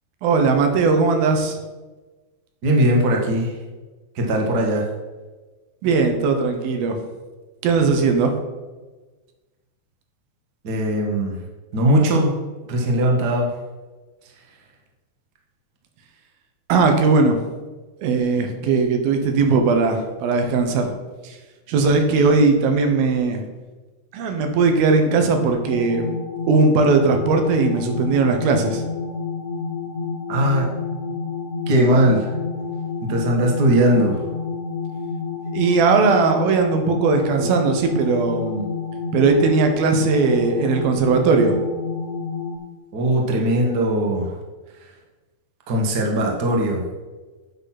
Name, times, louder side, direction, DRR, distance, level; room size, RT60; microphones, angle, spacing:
voice 1, 0.2-1.6 5.8-7.0 7.6-8.3 16.7-17.4 18.0-20.9 21.2-21.4 21.7-23.4 24.1-26.2 26.5-28.8 35.5-38.7 39.1-41.6, right 4 dB, 80° right, 5 dB, 2.9 m, -18 dB
voice 2, 2.6-3.5 4.1-4.8 10.6-11.4 11.7-12.3 12.7-13.5 30.3-30.7 31.7-32.3 33.0-34.2 42.9-44.3 45.7-46.8, right 1 dB, 55° right, 0 dB, 1.1 m, -19 dB
sound 1, 25.7-42.6, left 5 dB, 70° left, 2.4 m, -29 dB
8.9 x 6.2 x 5.9 m, 1.2 s
omnidirectional pair, 4.3 m